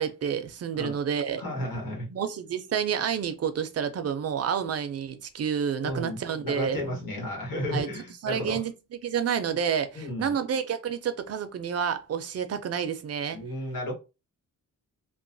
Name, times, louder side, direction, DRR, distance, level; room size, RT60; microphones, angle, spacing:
voice 1, 0.0-1.4 2.1-6.8 7.7-7.9 8.2-13.4, right 7 dB, 50° right, 0.4 m, -29 dB
voice 2, 1.4-2.1 5.8-8.6 9.9-10.3 13.3-13.9, left 1 dB, 85° left, 1.5 m, -33 dB
2.9 x 2.1 x 2.6 m
wide cardioid pair, 155°, 33 cm